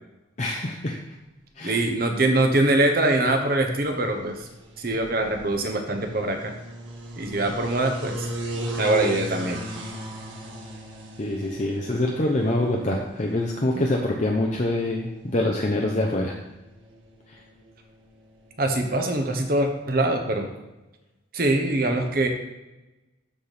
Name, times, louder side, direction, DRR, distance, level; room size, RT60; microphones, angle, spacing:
voice 1, 0.4-1.0 1.6-1.9 11.2-16.3, left 1 dB, 40° left, 0 dB, 0.6 m, -25 dB
voice 2, 1.6-4.5 4.8-6.5 7.2-8.3 8.8-9.6 18.6-20.5 21.3-22.3, right 2 dB, 50° right, 4 dB, 1.0 m, -23 dB
sound 1, 2.0-19.8, equal, 85° right, 1.6 m, -39 dB
12.5 x 4.2 x 3.4 m, 1.0 s
head